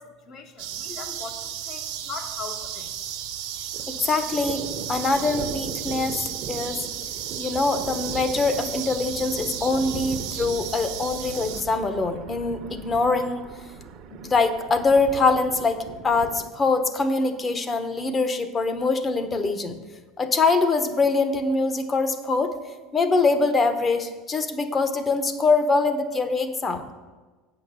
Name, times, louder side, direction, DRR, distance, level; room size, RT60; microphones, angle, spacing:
voice 1, 0.0-2.9, left 5 dB, 55° left, 3 dB, 1.4 m, -40 dB
sound 1, 0.6-11.6, right 10 dB, 75° right, 1.1 m, -34 dB
Thunder, 0.9-1.1 1.3-1.4 1.7-3.2 3.5-16.5, right 5 dB, 55° right, 0.9 m, -39 dB
voice 2, 3.9-4.6 4.9-6.2 6.5-6.8 7.4-13.4 14.1-19.7 20.2-22.5 22.9-26.9, left 3 dB, 30° left, 9 dB, 1.0 m, -23 dB
8.4 x 5.9 x 6.8 m, 1.3 s
supercardioid pair, 95°, 0 cm